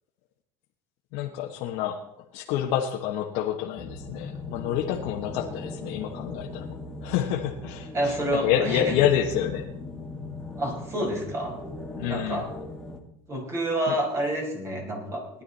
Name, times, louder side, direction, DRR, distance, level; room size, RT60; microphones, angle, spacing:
voice 1, 1.1-2.0 2.3-6.7 7.0-9.7 11.9-12.5 13.9-14.0, left 10 dB, 65° left, 0 dB, 1.4 m, -28 dB
sound 1, 3.8-13.0, left 2 dB, 5° left, 2.1 m, -38 dB
voice 2, 7.9-8.8 10.6-11.5 12.1-12.5 13.3-15.4, right 1 dB, 25° right, 1 dB, 5.1 m, -28 dB
18.5 x 11.5 x 4.2 m, 0.76 s
supercardioid pair, 135°, 11 cm